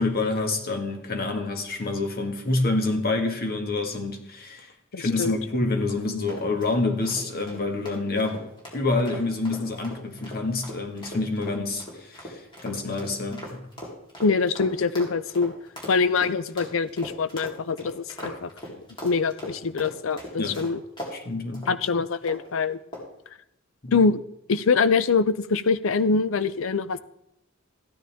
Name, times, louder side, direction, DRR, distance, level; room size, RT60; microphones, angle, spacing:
voice 1, 0.0-8.5 8.7-13.6 20.4-20.6 21.1-21.7 23.8-24.0, left 3 dB, 50° left, 4 dB, 1.7 m, -27 dB
voice 2, 4.9-5.3 14.2-15.5 15.9-18.8 19.0-20.8 21.7-22.8 23.9-24.2 24.5-27.0, left 4 dB, 70° left, 14 dB, 0.5 m, -24 dB
sound 1, 6.3-21.2 21.5-21.7 22.2-22.5 22.9-23.2, equal, 25° left, 3.4 m, -40 dB
14.5 x 10.0 x 3.5 m, 0.81 s
head